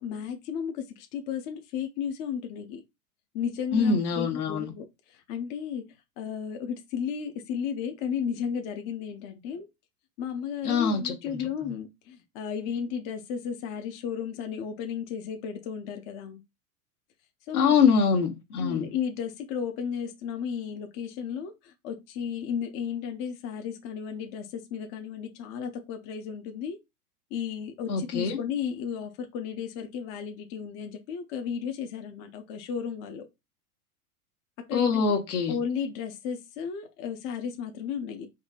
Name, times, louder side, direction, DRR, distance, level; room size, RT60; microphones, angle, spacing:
voice 1, 0.0-2.8 3.3-5.8 6.2-9.7 10.2-16.4 17.5-17.7 18.6-26.8 27.3-33.3 34.7-35.0 35.5-38.3, left 7 dB, 25° left, 0.4 m, -34 dB
voice 2, 3.7-4.7 10.6-11.1 17.5-18.9 27.9-28.4 34.7-35.6, left 5 dB, 75° left, 1.0 m, -24 dB
3.7 x 2.7 x 2.3 m
figure-of-eight pair, 95°, 46 cm